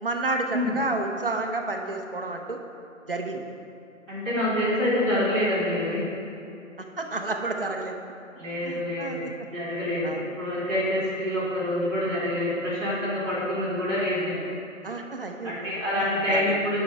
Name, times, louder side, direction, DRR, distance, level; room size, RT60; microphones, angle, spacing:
voice 1, 0.0-2.6 3.1-3.6 7.0-7.9 8.6-9.3 10.0-10.2 14.8-15.5 16.0-16.6, right 2 dB, 45° right, 3 dB, 0.8 m, -30 dB
voice 2, 4.1-6.0 8.4-9.2 9.5-14.4 15.4-16.8, left 1 dB, 10° right, -15 dB, 1.6 m, -26 dB
9.9 x 5.4 x 4.6 m, 2.7 s
figure-of-eight pair, 165°, 40 cm